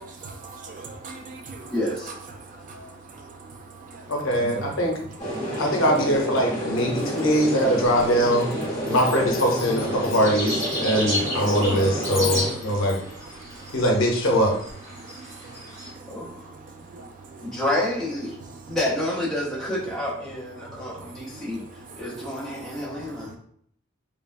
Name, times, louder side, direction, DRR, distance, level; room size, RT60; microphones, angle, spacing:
voice 1, 0.2-1.7 2.4-4.1 4.4-4.7 5.4-5.6 11.3-11.5 11.8-12.3 12.7-12.8 13.5-13.7 15.0-17.5 18.5-18.8 20.6-22.0 22.6-22.7, right 3 dB, 40° right, 0.3 m, -42 dB
voice 2, 1.7-2.1 16.1-16.5 17.4-18.4 18.7-21.7 22.0-23.4, left 1 dB, 5° left, 0.7 m, -29 dB
voice 3, 4.1-4.9 5.6-8.5 8.9-13.0 13.7-14.5, equal, 90° left, 0.7 m, -22 dB
sound 1, 5.2-12.5, equal, 20° left, 1.0 m, -29 dB
sound 2, 7.0-15.9, left 1 dB, 75° right, 1.3 m, -35 dB
Chime, 8.0-8.5 8.9-14.7, left 6 dB, 50° left, 0.4 m, -40 dB
3.2 x 2.0 x 2.4 m
head